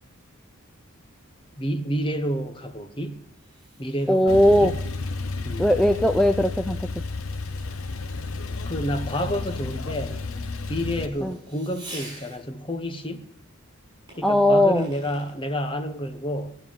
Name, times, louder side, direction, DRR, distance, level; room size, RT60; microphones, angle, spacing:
voice 1, 1.6-3.2 3.8-4.8 5.4-5.7 8.7-10.2 10.7-13.3 14.2-16.6, equal, 25° left, 1.1 m, -29 dB
Fireworks, 3.0-12.7 14.1-15.4, right 1 dB, 20° right, 7.8 m, -49 dB
voice 2, 4.1-4.7 5.6-6.8 11.2-11.3 14.2-14.8, left 1 dB, ahead, 0.4 m, -18 dB
Male speech man speaking / Car / Idling, 4.3-11.1, left 3 dB, 65° left, 0.8 m, -32 dB
19.5 x 7.1 x 7.4 m
head